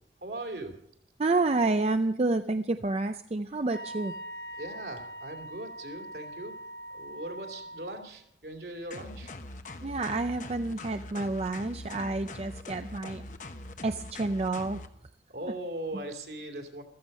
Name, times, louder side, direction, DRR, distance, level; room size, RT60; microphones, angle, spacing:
voice 1, 0.2-0.7 4.6-6.5 6.9-9.3 15.3-16.8, right 1 dB, 65° right, 4 dB, 2.7 m, -39 dB
voice 2, 1.2-4.1 9.8-13.2 13.8-14.8, right 2 dB, 35° right, 9 dB, 0.5 m, -29 dB
Wind instrument woodwind instrument, 3.7-8.1, right 1 dB, 65° left, 0.9 m, -42 dB
sound 1, 8.9-14.9, left 2 dB, 45° left, 1.1 m, -43 dB
15.0 x 14.0 x 5.4 m, 0.71 s
head